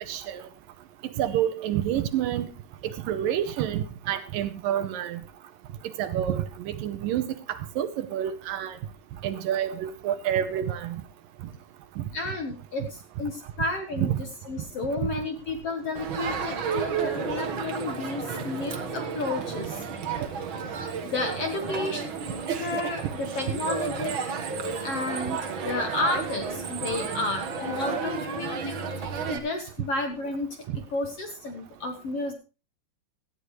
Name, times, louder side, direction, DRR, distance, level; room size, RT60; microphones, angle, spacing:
voice 1, 0.1-0.4 1.2-2.5 2.8-5.2 6.0-8.8 9.2-11.0 12.0-12.1 14.0-14.2, right 10 dB, 75° right, 11 dB, 2.4 m, -28 dB
voice 2, 12.1-14.1 14.4-19.8 21.1-22.0 22.6-24.3 24.8-30.5 30.9-32.3, left 2 dB, 55° left, 5 dB, 1.8 m, -32 dB
Crowd, 15.9-29.4, right 6 dB, 60° right, 1.3 m, -32 dB
Bowed string instrument, 16.8-20.4, equal, 10° right, 4.1 m, -43 dB
17.0 x 13.0 x 3.2 m, 0.32 s
omnidirectional pair, 4.3 m